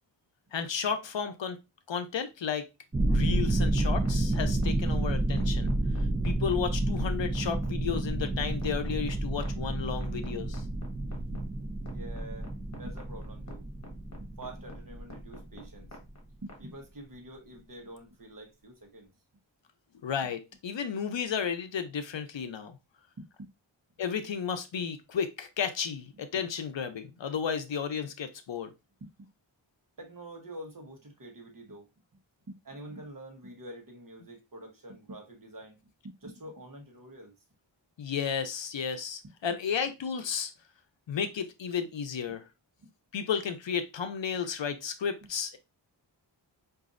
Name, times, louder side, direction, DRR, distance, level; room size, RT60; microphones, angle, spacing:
voice 1, 0.5-1.6 1.9-2.7 3.1-5.7 6.2-10.6 20.0-22.8 24.0-28.7 38.0-40.5 41.1-42.4 43.1-45.6, left 7 dB, 75° left, 0.7 m, -33 dB
sound 1, 2.9-16.0, right 2 dB, 15° right, 0.4 m, -30 dB
sound 2, 3.8-16.6, left 2 dB, 35° left, 1.2 m, -47 dB
voice 2, 11.9-12.5 12.8-13.7 14.3-15.9 16.4-19.1 23.2-23.5 29.0-29.3 30.0-31.9 32.5-35.8 36.0-37.3 42.8-42.9, right 1 dB, 45° right, 1.1 m, -46 dB
5.0 x 2.6 x 2.5 m
wide cardioid pair, 80°, 45 cm